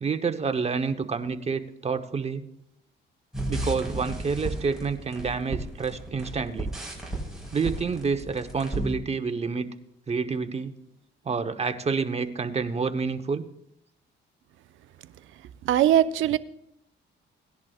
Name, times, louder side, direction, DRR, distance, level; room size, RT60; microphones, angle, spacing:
voice 1, 0.0-2.4 3.5-6.7 7.5-9.7 10.1-10.7 11.2-13.4, right 5 dB, 30° right, 8 dB, 1.0 m, -28 dB
sound 1, 3.3-9.0, right 1 dB, 5° right, 5.0 m, -33 dB
voice 2, 15.6-16.4, right 11 dB, 80° right, 12 dB, 0.6 m, -20 dB
18.0 x 10.5 x 2.4 m, 0.79 s
cardioid pair, 90°, 20 cm